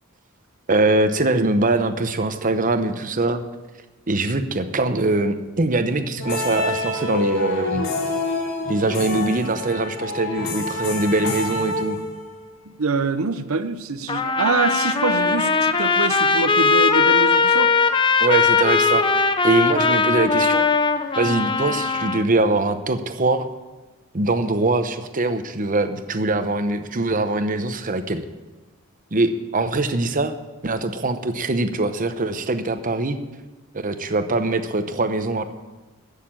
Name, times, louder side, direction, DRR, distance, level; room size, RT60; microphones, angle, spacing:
voice 1, 0.7-3.4 4.1-7.9 8.6-12.0 18.2-19.0 19.4-20.7 21.2-23.5 24.1-28.2 29.1-30.3 30.6-33.2 33.7-35.4, right 2 dB, 40° right, 8 dB, 0.9 m, -22 dB
sound 1, 6.2-12.5, left 2 dB, 80° left, 2.6 m, -27 dB
voice 2, 12.7-17.7, right 3 dB, 80° right, 9 dB, 0.8 m, -24 dB
Trumpet, 14.1-22.2, left 4 dB, 25° left, 0.7 m, -19 dB
15.0 x 6.7 x 8.9 m, 1.2 s
head